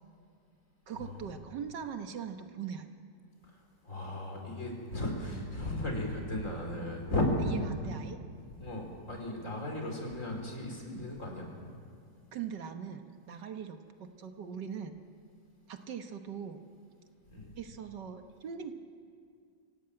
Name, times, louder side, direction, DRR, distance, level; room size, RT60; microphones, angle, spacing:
voice 1, 0.9-2.9 7.4-8.2 12.3-15.0 15.7-16.6 17.6-18.7, right 7 dB, 70° right, 7 dB, 1.8 m, -41 dB
voice 2, 3.8-7.3 8.6-11.5 17.3-17.6, left 1 dB, 45° left, 1 dB, 4.7 m, -35 dB
24.5 x 17.5 x 9.0 m, 2.2 s
omnidirectional pair, 1.9 m